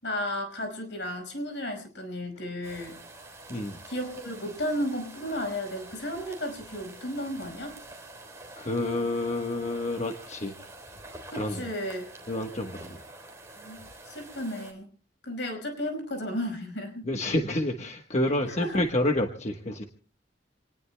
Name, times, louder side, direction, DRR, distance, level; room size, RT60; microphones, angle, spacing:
voice 1, 0.0-3.0 3.9-7.8 11.3-12.1 13.6-14.9 15.2-17.1 18.5-18.8, left 1 dB, 70° left, 6 dB, 5.4 m, -34 dB
sound 1, 2.6-14.7, right 2 dB, 15° right, 3.5 m, -47 dB
voice 2, 8.6-10.5 11.3-11.7 12.3-13.0 17.0-19.8, left 1 dB, 40° left, 3 dB, 1.2 m, -29 dB
28.0 x 19.5 x 2.2 m, 0.39 s
head